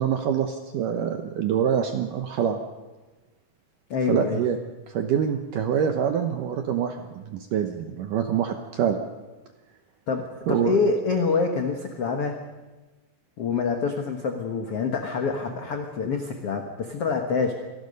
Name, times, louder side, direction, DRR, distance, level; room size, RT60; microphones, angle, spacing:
voice 1, 0.0-2.6 4.1-4.6 4.9-9.0 10.5-10.8, right 8 dB, 75° right, 6 dB, 2.0 m, -25 dB
voice 2, 3.9-4.4 10.1-12.4 13.4-17.5, left 4 dB, 75° left, 4 dB, 1.3 m, -26 dB
26.5 x 19.0 x 5.4 m, 1.2 s
omnidirectional pair, 5.0 m